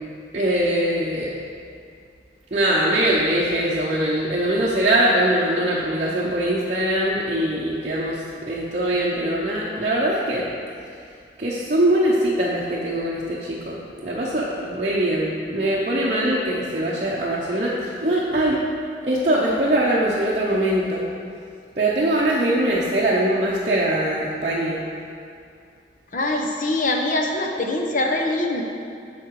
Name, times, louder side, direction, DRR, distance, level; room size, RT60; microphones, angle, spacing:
voice 1, 0.3-1.3 2.5-8.2 8.5-10.5 11.4-18.6 19.0-21.0 21.8-24.8, right 1 dB, 40° right, -7 dB, 0.8 m, -22 dB
voice 2, 26.1-28.6, left 2 dB, 45° left, 1 dB, 0.9 m, -23 dB
8.5 x 5.9 x 4.7 m, 2.4 s
head